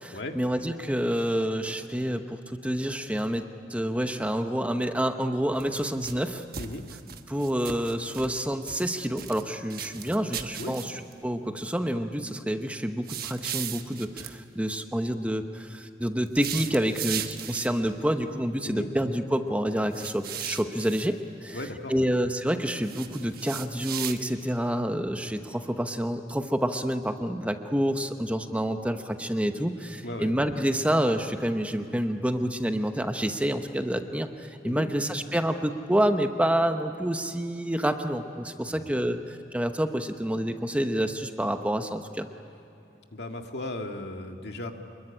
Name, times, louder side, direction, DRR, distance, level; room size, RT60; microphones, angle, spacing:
voice 1, 0.0-6.4 7.3-21.6 21.9-42.3, equal, 10° right, 7 dB, 0.9 m, -28 dB
sound 1, 5.5-6.2 6.5-8.4 8.7-9.4 9.7-11.1 13.0-14.3 16.3-17.9 19.9-21.1 22.8-24.5, right 9 dB, 60° right, 1.3 m, -37 dB
voice 2, 21.5-22.1 30.0-30.3 34.6-34.9 38.6-38.8 43.1-44.7, left 1 dB, 70° left, 4 dB, 2.0 m, -36 dB
26.5 x 22.0 x 10.0 m, 2.8 s
head